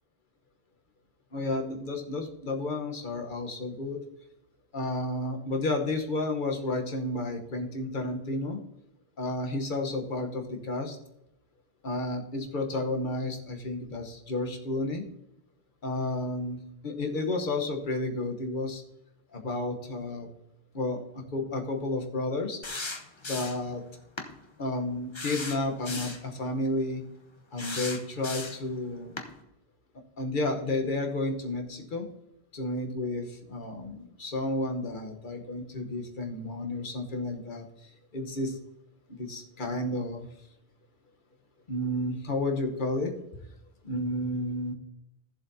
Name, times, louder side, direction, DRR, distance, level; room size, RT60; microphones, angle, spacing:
voice 1, 1.3-4.0 4.7-8.6 9.2-11.0 11.8-15.0 15.8-18.8 19.3-20.3 20.7-22.6 23.2-23.8 24.6-27.0 27.5-29.2 30.2-32.1 32.5-38.6 39.2-40.3 41.7-43.1 43.8-44.7, left 2 dB, 50° left, 3 dB, 1.3 m, -31 dB
sound 1, 22.6-23.7 24.2-24.3 25.1-26.2 27.6-28.7 29.2-29.3, left 3 dB, 30° left, 0.8 m, -36 dB
14.0 x 7.4 x 2.8 m, 0.87 s
omnidirectional pair, 1.1 m